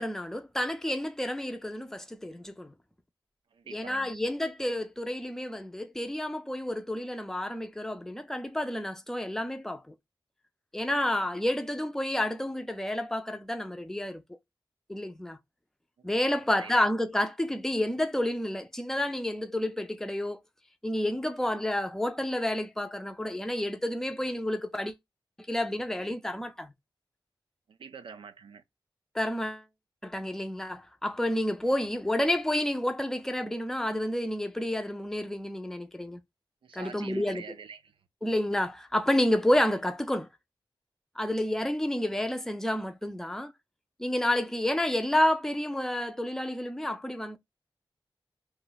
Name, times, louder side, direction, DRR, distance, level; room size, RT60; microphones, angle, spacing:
voice 1, 0.0-2.7 3.7-9.9 10.7-14.2 14.9-15.4 16.0-20.4 20.8-25.0 25.5-26.7 29.1-29.6 30.0-36.2 36.7-37.4 38.2-40.3 41.2-43.5 44.0-47.4, left 1 dB, 5° left, 0.5 m, -30 dB
voice 2, 3.5-4.1 11.2-11.3 16.6-16.9 27.7-28.6 36.6-37.9, right 6 dB, 90° right, 0.5 m, -45 dB
2.8 x 2.3 x 3.8 m
wide cardioid pair, 75°, 9 cm